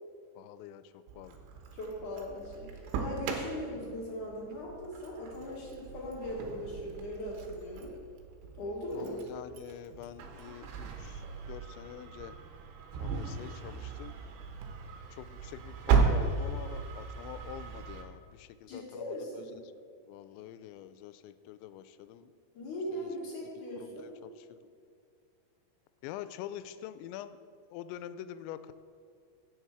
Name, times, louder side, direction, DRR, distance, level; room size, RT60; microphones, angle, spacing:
voice 1, 0.4-1.4 8.9-12.4 12.9-14.1 15.1-19.7 20.0-22.3 22.9-23.1 23.8-24.7 26.0-27.4 27.7-28.7, left 11 dB, 90° left, 12 dB, 2.9 m, -46 dB
Engine starting, 1.1-18.0, right 5 dB, 90° right, 3.5 m, -36 dB
voice 2, 1.7-7.9 8.6-9.2 18.7-19.6 22.5-24.1, equal, 55° left, -3 dB, 2.7 m, -39 dB
16.0 x 6.9 x 4.8 m, 2.4 s
omnidirectional pair, 5.1 m